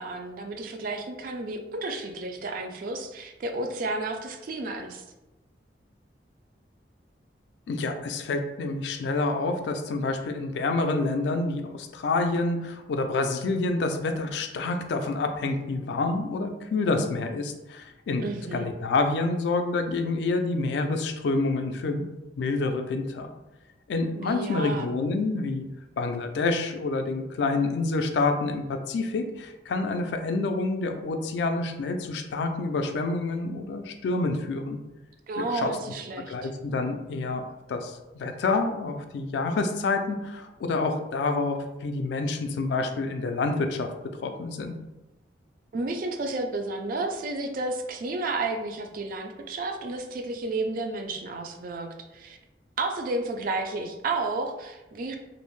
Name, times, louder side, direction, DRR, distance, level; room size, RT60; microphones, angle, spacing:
voice 1, 0.0-5.0 18.2-18.7 24.2-24.9 35.3-36.5 45.7-52.4 52.8-55.2, right 2 dB, 50° right, 5 dB, 0.3 m, -32 dB
voice 2, 7.7-22.0 22.4-23.3 23.9-25.6 26.0-34.8 35.4-35.7 36.3-37.4 37.7-43.9 44.2-44.8, left 3 dB, 70° left, 6 dB, 0.3 m, -28 dB
2.5 x 2.0 x 3.0 m, 1.0 s
head